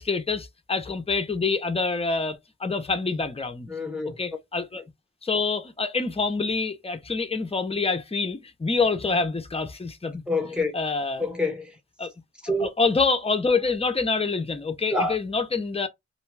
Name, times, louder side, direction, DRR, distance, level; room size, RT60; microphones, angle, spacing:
voice 1, 0.0-3.7 4.2-4.8 5.2-10.2 10.7-11.3 12.0-12.1 12.5-15.9, left 4 dB, 20° left, 0.5 m, -26 dB
voice 2, 3.7-4.2 10.3-10.7 11.2-11.7 12.4-12.7 14.9-15.2, left 2 dB, 5° right, 0.9 m, -26 dB
2.5 x 2.2 x 3.1 m
wide cardioid pair, 50°, 30 cm